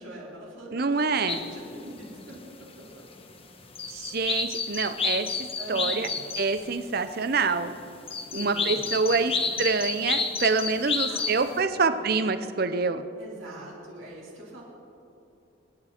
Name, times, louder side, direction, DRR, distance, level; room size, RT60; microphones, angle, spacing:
voice 1, 0.0-3.0 5.6-6.3 8.2-9.7 11.1-12.4 13.2-14.6, right 1 dB, 80° right, -5 dB, 4.5 m, -44 dB
voice 2, 0.7-1.4 3.9-5.3 5.7-6.1 6.4-7.7 8.4-13.0, right 4 dB, 50° right, 11 dB, 0.6 m, -26 dB
sound 1, 1.3-1.6 2.6-2.7 3.1-3.4 3.7-6.8 7.3-7.4 8.1-11.5, left 5 dB, 30° left, 1.2 m, -30 dB
28.5 x 9.7 x 4.3 m, 2.8 s
head